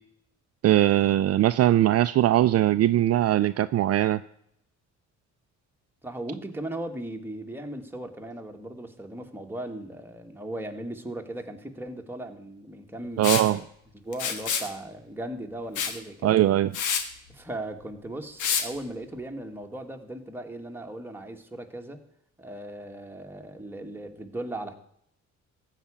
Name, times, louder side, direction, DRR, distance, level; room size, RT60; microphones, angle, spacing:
voice 1, 0.6-4.2 13.2-13.6 16.2-16.7, right 13 dB, 55° right, 12 dB, 0.4 m, -21 dB
voice 2, 6.0-13.6 13.9-16.4 17.3-22.0 22.4-24.7, right 1 dB, 5° right, 3 dB, 1.6 m, -37 dB
Liquid, 13.2-13.5 14.1-14.7 15.8-16.0 16.4-16.5 16.7-17.0 18.4-18.7, left 7 dB, 90° left, 1.4 m, -27 dB
14.5 x 5.0 x 8.6 m, 0.71 s
cardioid pair, 90°, 30 cm